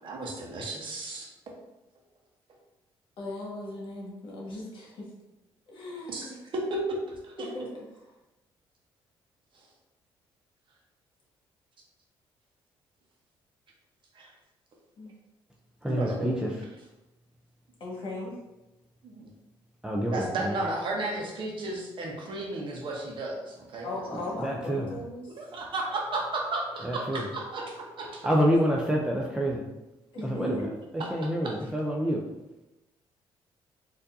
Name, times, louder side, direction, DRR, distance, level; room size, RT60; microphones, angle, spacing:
voice 1, 0.0-1.3 6.1-7.5 14.1-14.3 15.9-16.4 19.0-19.3 20.1-23.9 25.4-28.3 31.0-31.1 31.4-31.5, right 2 dB, 55° right, -1 dB, 0.9 m, -33 dB
voice 2, 3.2-5.1 5.7-6.3 7.4-7.7 7.9-8.0 15.0-15.1 17.8-18.4 23.8-25.2 30.1-30.7, left 1 dB, 55° left, -3 dB, 1.4 m, -37 dB
voice 3, 15.8-16.6 19.8-20.5 24.3-24.9 26.8-27.2 28.2-29.6 30.2-30.7 31.1-32.2, equal, 5° right, -2 dB, 0.5 m, -27 dB
4.3 x 2.7 x 2.6 m, 0.98 s
cardioid pair, 85°, 10 cm